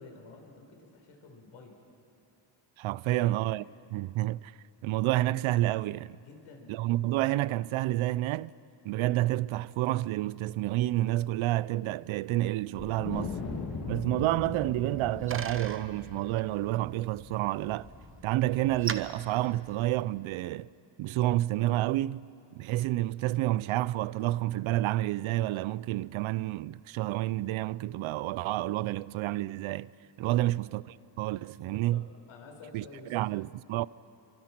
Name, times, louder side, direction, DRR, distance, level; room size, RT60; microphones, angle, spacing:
voice 1, 0.0-1.8 2.9-3.4 6.1-6.8 30.2-30.5 31.9-33.3, left 3 dB, 80° left, 4.8 m, -50 dB
voice 2, 2.8-3.6 3.9-4.5 4.8-6.2 6.7-8.5 8.8-13.4 13.9-17.9 18.2-20.7 21.0-22.3 22.5-29.9 30.2-30.8 31.2-32.0 32.7-32.8 33.1-33.9, right 16 dB, 80° right, 0.6 m, -29 dB
Wind, 12.7-19.3, left 4 dB, 50° left, 3.0 m, -40 dB
Bicycle, 14.7-20.3, right 6 dB, 25° right, 0.9 m, -43 dB
27.5 x 24.0 x 6.0 m
cardioid pair, 150°, 48 cm